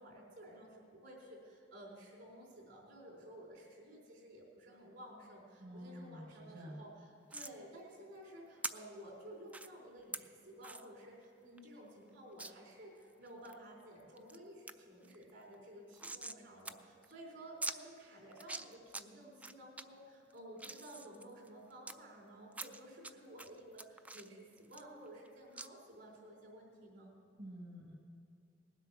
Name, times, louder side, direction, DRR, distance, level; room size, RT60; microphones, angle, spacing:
voice 1, 0.0-27.1, right 1 dB, 65° right, -2 dB, 4.2 m, -54 dB
voice 2, 5.6-6.8 27.4-27.9, equal, 45° right, -2 dB, 1.4 m, -49 dB
sound 1, 7.3-7.5 8.6-8.7 9.5-9.7 10.1-10.2 10.6-10.8 11.2-11.3 11.6-11.7 12.4-12.5 13.0-13.6 14.0-14.4 14.7-14.8 15.0-16.4 16.6-16.7 17.0-17.1 17.6-17.8 18.3-19.0 19.4-19.8 20.3-21.9 22.5-23.1 23.4-25.3 25.6-25.7, right 2 dB, 10° right, 0.3 m, -44 dB
19.0 x 8.1 x 6.1 m, 2.7 s
head